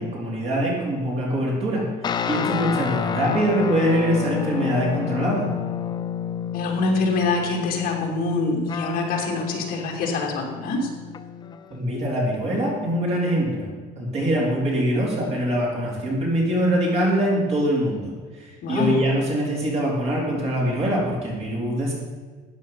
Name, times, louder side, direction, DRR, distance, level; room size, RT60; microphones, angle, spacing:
voice 1, 0.0-1.8 2.3-5.5 11.7-13.7 14.0-21.9, equal, 35° right, -3 dB, 3.9 m, -23 dB
sound 1, 2.0-11.7, left 8 dB, 25° left, 0.5 m, -29 dB
voice 2, 6.5-10.9 18.6-18.9, left 3 dB, 50° left, -1 dB, 2.9 m, -25 dB
13.5 x 9.2 x 5.7 m, 1.4 s
cardioid pair, 175°, 18 cm